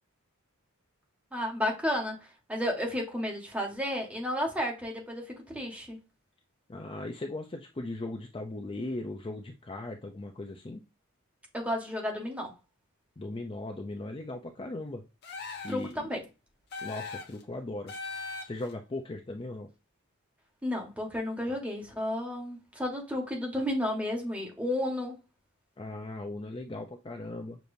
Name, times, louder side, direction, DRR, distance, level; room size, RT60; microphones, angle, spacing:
voice 1, 1.3-2.2 2.5-6.0 11.5-12.5 15.7-16.2 20.6-25.2, left 1 dB, 5° right, 1.4 m, -32 dB
voice 2, 6.7-10.8 13.2-15.0 15.6-16.1 16.8-17.9 18.4-19.7 25.8-27.6, left 2 dB, 25° left, 0.5 m, -38 dB
sound 1, 15.2-15.9 16.7-17.4 17.9-18.7, left 4 dB, 50° left, 1.2 m, -39 dB
6.7 x 2.9 x 2.7 m
head